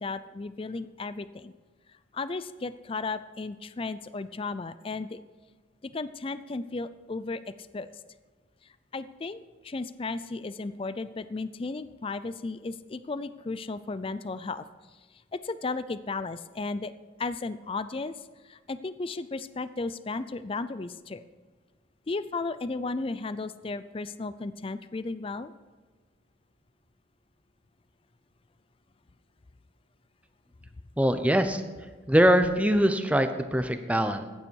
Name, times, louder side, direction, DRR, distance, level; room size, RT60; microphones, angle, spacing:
voice 1, 0.0-1.5 2.1-5.2 5.8-7.4 7.7-7.9 8.9-14.7 15.3-16.9 17.2-18.2 18.4-21.2 22.1-25.5, left 3 dB, 25° left, 14 dB, 0.4 m, -34 dB
voice 2, 31.0-31.6 32.1-34.3, equal, 5° right, 8 dB, 0.8 m, -23 dB
15.0 x 9.9 x 4.7 m, 1.4 s
head